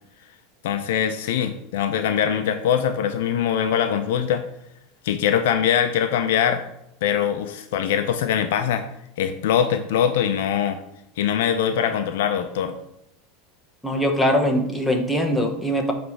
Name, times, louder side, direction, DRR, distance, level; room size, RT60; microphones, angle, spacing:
voice 1, 0.6-4.4 5.0-6.6 7.0-8.9 9.2-10.8 11.2-12.8, left 9 dB, 80° left, 8 dB, 0.6 m, -22 dB
voice 2, 13.8-15.9, equal, 5° left, 1 dB, 1.2 m, -22 dB
7.8 x 3.3 x 5.7 m, 0.79 s
supercardioid pair, 130°, 0 cm